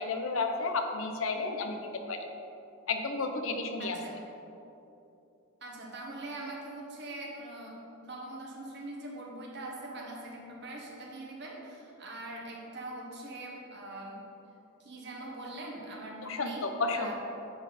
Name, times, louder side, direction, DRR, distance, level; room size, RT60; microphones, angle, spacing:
voice 1, 0.0-1.8 2.1-2.2 2.9-4.0 16.3-17.1, left 3 dB, 70° left, 5 dB, 0.7 m, -32 dB
voice 2, 3.8-4.2 5.6-7.8 8.0-14.2 14.8-16.6 16.9-17.1, right 2 dB, 55° right, -1 dB, 1.3 m, -42 dB
9.4 x 4.1 x 4.1 m, 2.9 s
head